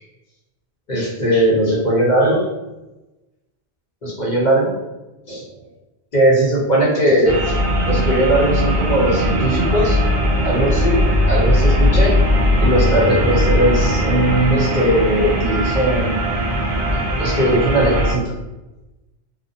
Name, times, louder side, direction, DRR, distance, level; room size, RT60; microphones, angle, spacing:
voice 1, 0.9-2.4 4.0-4.7 5.3-5.4 6.1-7.5 7.8-10.0 10.4-11.0 11.3-12.1 12.6-16.4 17.2-18.2, right 1 dB, 45° left, -5 dB, 0.7 m, -18 dB
sound 1, 7.3-18.1, equal, 40° right, 0.5 m, -18 dB
sound 2, 11.8-17.0, right 6 dB, 75° left, 0.9 m, -34 dB
2.6 x 2.1 x 2.6 m, 1.0 s
omnidirectional pair, 1.2 m